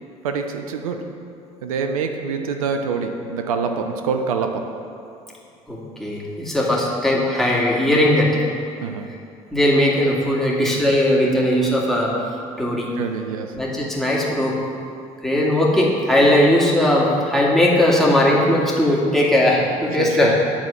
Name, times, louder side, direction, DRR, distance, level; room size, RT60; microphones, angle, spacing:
voice 1, 0.2-1.2 1.6-4.7 8.8-9.1 13.0-13.6 19.9-20.4, right 5 dB, 85° right, 5 dB, 0.6 m, -25 dB
voice 2, 5.7-8.4 9.5-12.1 12.6-12.9 13.5-14.6 15.2-20.3, left 1 dB, ahead, -5 dB, 2.2 m, -18 dB
8.6 x 4.2 x 7.2 m, 2.5 s
hypercardioid pair, 55°, 18 cm